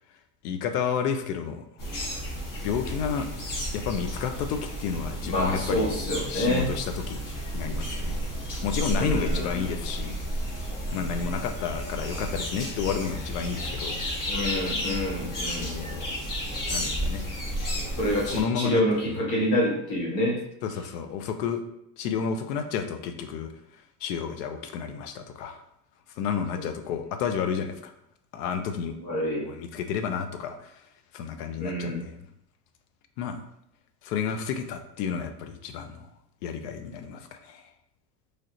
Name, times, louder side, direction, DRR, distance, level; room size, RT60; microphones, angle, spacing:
voice 1, 0.4-1.6 2.6-3.3 3.7-7.2 7.5-8.2 8.6-10.2 10.9-14.0 15.7-16.1 16.5-17.3 18.3-18.8 20.6-21.6 22.0-25.6 26.2-27.9 28.3-29.0 29.4-30.9 31.1-32.2 33.2-33.4 34.0-36.1 36.4-37.7, left 7 dB, 80° left, 7 dB, 0.6 m, -31 dB
sound 1, 1.8-18.4, equal, 45° left, 1.2 m, -32 dB
voice 2, 5.3-6.7 8.9-9.7 14.3-15.7 18.0-20.4 29.0-29.4 31.6-32.0, left 1 dB, 60° left, -3 dB, 1.5 m, -27 dB
3.2 x 2.4 x 2.8 m, 0.79 s
hypercardioid pair, 90°, 46 cm